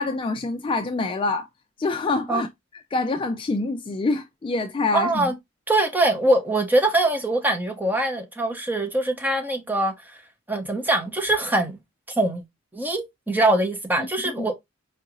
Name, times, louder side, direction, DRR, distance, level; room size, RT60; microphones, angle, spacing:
voice 1, 0.0-1.5 1.8-2.5 2.9-5.3 14.3-14.5, left 3 dB, 25° left, 0.3 m, -25 dB
voice 2, 4.9-5.3 5.7-10.2 10.5-11.8 12.2-12.4 12.7-14.5, right 2 dB, 10° right, 0.8 m, -23 dB
4.5 x 2.5 x 2.9 m
head